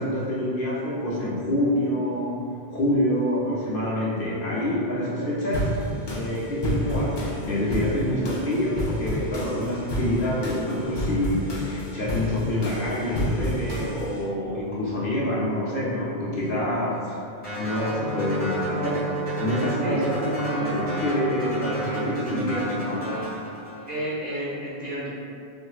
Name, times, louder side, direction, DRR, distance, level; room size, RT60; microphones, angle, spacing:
voice 1, 0.0-5.7 6.1-17.2 17.6-23.1, left 1 dB, 60° left, -6 dB, 0.8 m, -26 dB
sound 1, 5.5-14.2, equal, 35° left, 0.4 m, -30 dB
sound 2, 17.4-24.1, equal, 10° left, 0.9 m, -34 dB
Wind instrument woodwind instrument, 17.7-22.2, right 3 dB, 65° right, 0.8 m, -32 dB
voice 2, 23.9-25.1, equal, 40° right, -10 dB, 1.0 m, -31 dB
4.3 x 2.3 x 2.3 m, 2.5 s
omnidirectional pair, 1.1 m